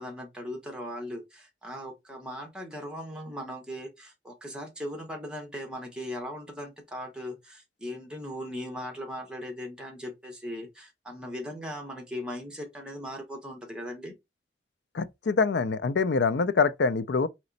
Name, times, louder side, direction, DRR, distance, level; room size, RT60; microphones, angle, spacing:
voice 1, 0.0-14.1, equal, 5° right, 1.2 m, -38 dB
voice 2, 14.9-17.3, left 4 dB, 75° left, 0.5 m, -25 dB
4.2 x 3.0 x 3.9 m
head